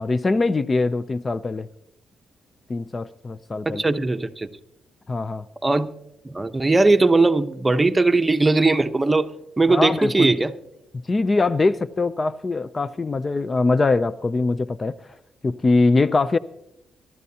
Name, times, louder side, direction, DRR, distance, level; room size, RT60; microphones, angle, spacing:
voice 1, 0.0-1.7 2.7-3.8 5.1-5.5 9.7-10.3 11.1-15.2 15.4-16.4, left 3 dB, 35° left, 16 dB, 0.5 m, -22 dB
voice 2, 3.7-4.5 5.6-5.9 6.2-9.3 9.6-10.5, right 3 dB, 20° right, 8 dB, 0.9 m, -19 dB
24.5 x 12.0 x 2.8 m, 0.84 s
cardioid pair, 70°, 0 cm